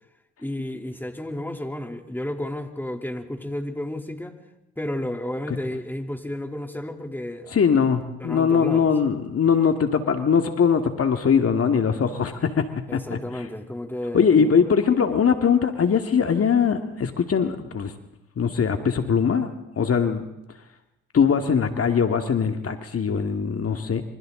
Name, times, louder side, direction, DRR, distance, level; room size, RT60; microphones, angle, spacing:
voice 1, 0.4-4.4 4.8-7.6 8.2-8.9 12.9-14.5 21.3-21.4, left 1 dB, 5° left, 4 dB, 3.3 m, -32 dB
voice 2, 7.5-13.2 14.1-17.9 18.4-19.5 19.8-20.2 21.1-24.0, left 6 dB, 45° left, 6 dB, 2.2 m, -21 dB
28.5 x 25.0 x 3.9 m, 0.92 s
supercardioid pair, 60°, 32 cm